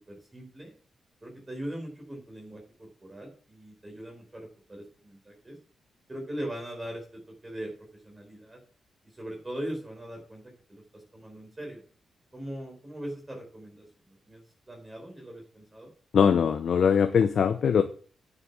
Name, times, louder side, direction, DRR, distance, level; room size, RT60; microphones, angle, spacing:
voice 1, 0.1-0.7 1.2-5.6 6.1-7.7 8.0-8.6 9.1-11.8 12.3-15.9, right 1 dB, 20° right, 1 dB, 4.7 m, -40 dB
voice 2, 16.1-17.8, left 7 dB, 65° left, 8 dB, 0.8 m, -21 dB
9.7 x 6.9 x 6.2 m, 0.42 s
cardioid pair, 80°, 0 cm